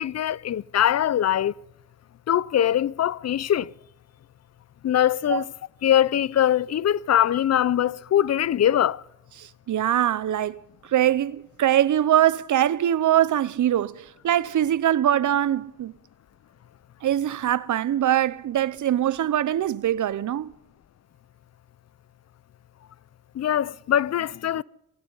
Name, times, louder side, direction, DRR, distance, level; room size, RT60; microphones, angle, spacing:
voice 1, 0.0-1.5 2.3-3.7 4.8-5.4 5.8-9.0 23.3-24.6, left 10 dB, 55° left, 0.5 m, -22 dB
voice 2, 9.4-15.9 17.0-20.5, right 11 dB, 65° right, 0.7 m, -23 dB
19.5 x 17.0 x 4.0 m
cardioid pair, 70°, 32 cm